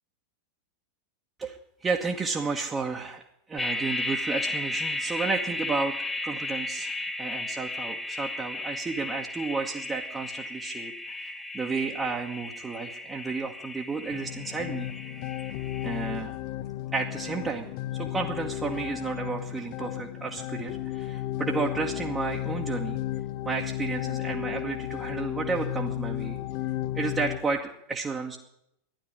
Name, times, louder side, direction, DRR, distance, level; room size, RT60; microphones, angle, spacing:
voice 1, 1.4-3.2 3.5-6.0 6.2-14.9 15.8-16.4 16.9-23.0 23.4-26.4 26.9-28.4, right 4 dB, 15° right, -1 dB, 1.4 m, -32 dB
sound 1, 3.6-16.1, left 2 dB, 5° left, 1.3 m, -35 dB
sound 2, 14.1-27.4, left 14 dB, 45° left, 0.9 m, -33 dB
13.0 x 11.0 x 10.0 m, 0.80 s
figure-of-eight pair, 90°, 0 cm